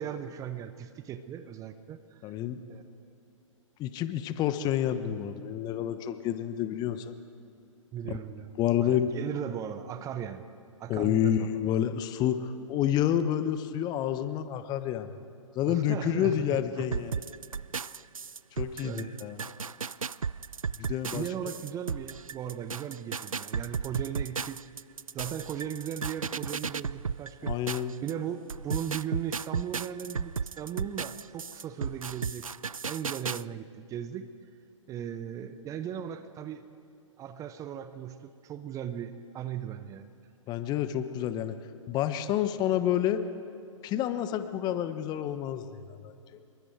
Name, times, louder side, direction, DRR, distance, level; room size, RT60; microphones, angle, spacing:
voice 1, 0.0-2.3 2.7-2.8 7.9-8.5 8.8-10.4 10.8-11.5 15.7-16.9 18.8-19.1 21.1-24.6 25.1-27.6 28.0-32.5 32.8-34.3 34.9-36.6 37.2-40.1, right 9 dB, 20° right, 11 dB, 0.8 m, -37 dB
voice 2, 2.2-2.6 3.8-7.1 8.0-8.2 8.6-9.1 10.9-15.1 15.5-17.2 18.5-19.4 20.8-21.2 27.4-27.9 40.5-41.6 41.9-43.2 43.8-46.4, left 10 dB, 25° left, 11 dB, 1.0 m, -29 dB
sound 1, 16.9-28.1 28.5-33.4, right 5 dB, 90° right, 0.4 m, -34 dB
26.5 x 23.0 x 4.7 m, 2.6 s
figure-of-eight pair, 120°, 17 cm